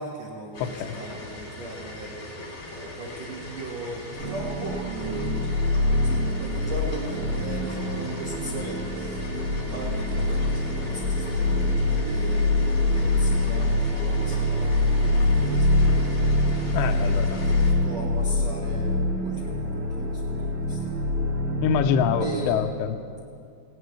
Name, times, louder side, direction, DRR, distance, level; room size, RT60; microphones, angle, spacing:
voice 1, 0.0-2.2 2.7-5.5 6.0-9.2 9.6-12.5 12.8-16.6 17.1-20.8 22.2-22.6, right 2 dB, 75° right, -3 dB, 1.5 m, -38 dB
sound 1, 0.5-17.7, left 1 dB, 35° left, 3.0 m, -40 dB
voice 2, 0.6-1.0 16.7-17.5 21.6-22.9, left 7 dB, 85° left, 6 dB, 2.6 m, -25 dB
sound 2, 4.2-22.5, left 2 dB, 55° right, 2.3 m, -25 dB
19.5 x 18.0 x 3.2 m, 2.4 s
omnidirectional pair, 5.4 m